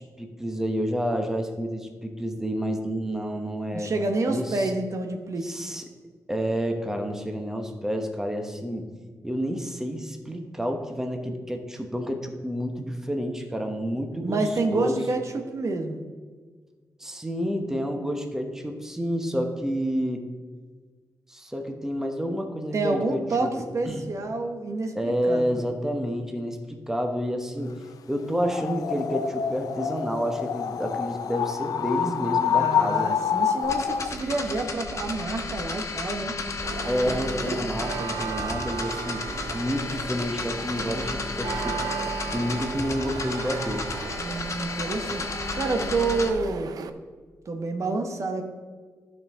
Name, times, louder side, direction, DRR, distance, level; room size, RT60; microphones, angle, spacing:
voice 1, 0.0-3.9 4.3-4.7 5.4-5.8 6.3-8.9 9.2-14.4 14.7-15.0 17.0-20.2 21.3-23.5 23.8-24.0 24.9-26.6 26.9-27.8 28.1-33.1 36.9-39.3 39.5-41.8 42.3-43.9, equal, 5° right, 4 dB, 1.0 m, -29 dB
voice 2, 3.7-5.7 14.2-16.0 22.7-25.7 32.5-36.3 37.1-37.2 44.2-45.3 45.5-46.7 47.5-48.4, right 3 dB, 55° right, 4 dB, 0.9 m, -28 dB
sound 1, 28.4-34.2, left 8 dB, 80° left, 0.4 m, -27 dB
sound 2, 33.6-46.3, left 3 dB, 55° left, 1.1 m, -33 dB
sound 3, 36.6-46.9, right 7 dB, 85° right, 0.5 m, -36 dB
12.0 x 5.4 x 3.6 m, 1.5 s
cardioid pair, 80°, 6 cm